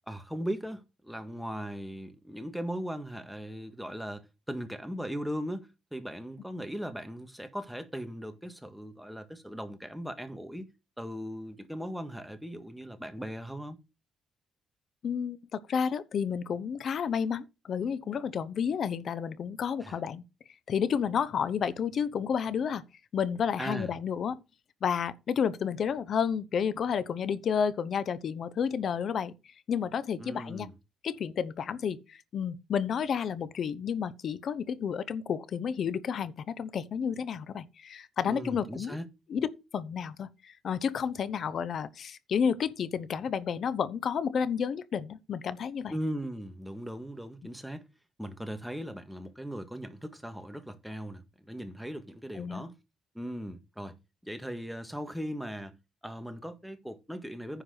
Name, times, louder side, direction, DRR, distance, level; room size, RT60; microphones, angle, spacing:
voice 1, 0.1-10.7 11.0-13.8 19.8-20.0 23.6-23.9 30.2-30.7 38.2-39.1 45.9-47.8 48.2-52.8 53.2-54.0 54.2-55.8 56.0-57.6, equal, ahead, 1.8 m, -38 dB
voice 2, 15.0-20.2 20.7-22.8 23.1-24.4 24.8-29.3 29.7-30.7 31.0-39.0 39.3-39.5 39.7-45.9 52.4-52.6, left 7 dB, 60° left, 0.9 m, -31 dB
10.0 x 4.7 x 6.5 m
cardioid pair, 90°, 0 cm